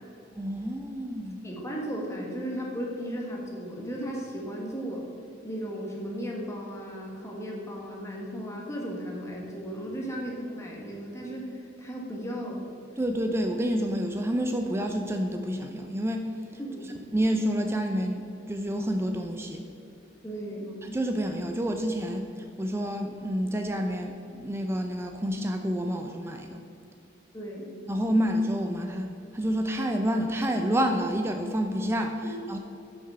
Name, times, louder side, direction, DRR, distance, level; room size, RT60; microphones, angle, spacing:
voice 1, 0.4-1.4 13.0-16.3 17.1-19.7 20.8-26.6 27.9-32.6, equal, 15° right, 4 dB, 0.4 m, -29 dB
voice 2, 1.4-5.0 5.4-11.5 11.8-12.6 16.6-16.9 20.2-20.7 27.3-27.7, equal, 15° left, -2 dB, 1.3 m, -35 dB
6.2 x 5.9 x 5.6 m, 2.6 s
head